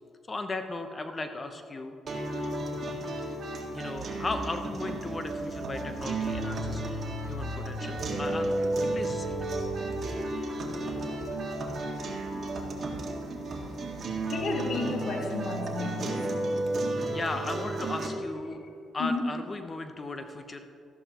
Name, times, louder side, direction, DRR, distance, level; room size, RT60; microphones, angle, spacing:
voice 1, 0.3-1.9 3.7-9.4 17.1-18.6 18.9-20.6, left 2 dB, 30° left, 7 dB, 0.8 m, -36 dB
sound 1, 2.1-18.1, right 2 dB, 45° right, 1.8 m, -33 dB
sound 2, 3.9-14.0, right 1 dB, 70° right, 1.1 m, -45 dB
voice 2, 14.3-16.2 19.0-19.2, left 3 dB, 70° left, 1 dB, 1.3 m, -32 dB
13.5 x 11.0 x 3.0 m, 2.6 s
cardioid pair, 90°, 0 cm